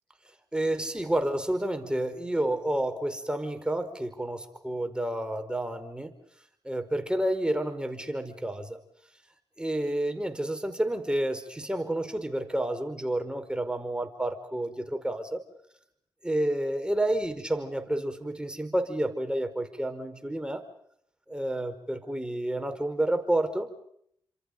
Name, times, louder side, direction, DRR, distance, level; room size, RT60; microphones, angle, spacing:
voice 1, 0.5-6.1 6.6-8.8 9.6-15.4 16.2-20.6 21.3-23.7, right 1 dB, 10° right, 7 dB, 4.9 m, -30 dB
28.5 x 26.5 x 5.3 m, 0.70 s
hypercardioid pair, 40°, 11 cm